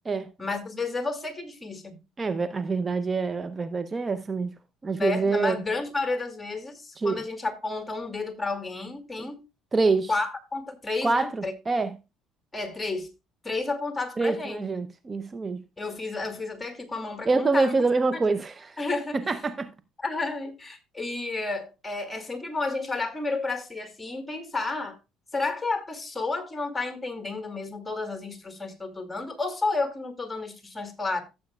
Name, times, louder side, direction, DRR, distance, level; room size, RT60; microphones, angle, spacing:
voice 1, 0.4-2.0 4.9-9.4 10.1-11.5 12.5-13.1 13.4-14.6 15.8-17.7 18.1-18.2 18.8-19.2 20.0-25.0 25.3-31.2, left 3 dB, 15° left, 2.4 m, -31 dB
voice 2, 2.2-4.5 4.8-5.6 7.0-7.2 9.2-9.3 9.7-10.1 11.0-12.0 14.2-15.6 17.3-18.8 19.1-19.7, right 3 dB, 30° right, 0.6 m, -26 dB
14.0 x 7.6 x 2.4 m
hypercardioid pair, 65°, 0 cm